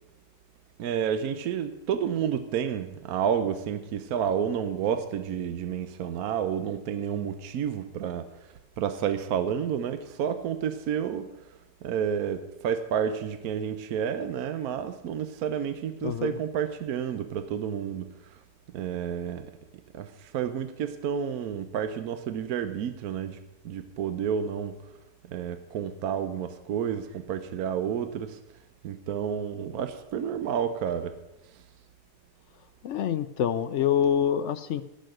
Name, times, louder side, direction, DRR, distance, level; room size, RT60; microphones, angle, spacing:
voice 1, 0.8-8.3 8.8-11.3 11.8-18.4 18.7-19.5 19.9-23.4 23.6-24.8 25.3-28.4 28.8-31.2 31.5-31.6, right 8 dB, 70° right, 1.1 m, -30 dB
voice 2, 16.0-16.4 32.8-34.8, left 9 dB, 70° left, 0.7 m, -26 dB
16.5 x 6.5 x 6.4 m
omnidirectional pair, 1.7 m